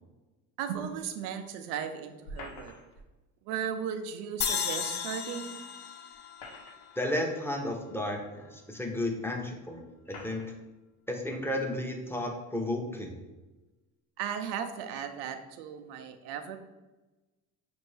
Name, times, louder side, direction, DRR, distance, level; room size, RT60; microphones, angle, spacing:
voice 1, 0.6-2.7 3.5-5.6 14.2-16.6, right 8 dB, 80° right, 8 dB, 0.6 m, -36 dB
sound 1, 2.2-3.1 4.8-4.9 6.1-7.1 7.9-8.0 9.0-9.1 10.0-10.6, left 1 dB, 70° left, 1.0 m, -46 dB
sound 2, 4.4-7.7, left 7 dB, 25° left, 0.4 m, -35 dB
voice 2, 7.0-9.8 10.2-10.4 11.1-13.2, left 1 dB, 5° left, 2 dB, 0.8 m, -33 dB
5.1 x 2.6 x 3.3 m, 1.1 s
hypercardioid pair, 65°, 44 cm